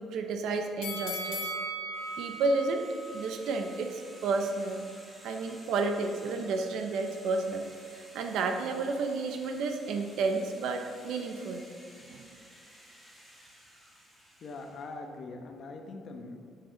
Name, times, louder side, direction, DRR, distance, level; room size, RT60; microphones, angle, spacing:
voice 1, 0.0-1.5 2.2-2.9 3.1-4.9 5.2-11.6 12.1-12.3, right 3 dB, 65° right, 5 dB, 0.9 m, -31 dB
sound 1, 0.8-3.9 4.3-4.4, right 1 dB, 90° left, 1.9 m, -38 dB
sound 2, 1.9-15.0, equal, 10° right, 1.7 m, -54 dB
voice 2, 14.4-16.5, left 3 dB, 40° left, 4 dB, 1.0 m, -42 dB
12.0 x 6.6 x 4.0 m, 2.4 s
cardioid pair, 175°, 0 cm